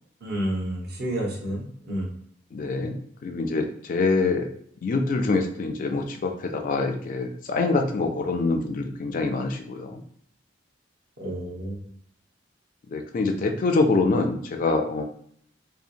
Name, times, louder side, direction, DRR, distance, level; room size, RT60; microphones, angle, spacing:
voice 1, 0.2-2.1 11.2-11.9, right 1 dB, 60° right, -2 dB, 0.7 m, -30 dB
voice 2, 2.5-4.5 4.8-10.0 12.9-15.0, left 3 dB, 45° left, 4 dB, 0.3 m, -25 dB
2.8 x 2.0 x 2.5 m, 0.64 s
head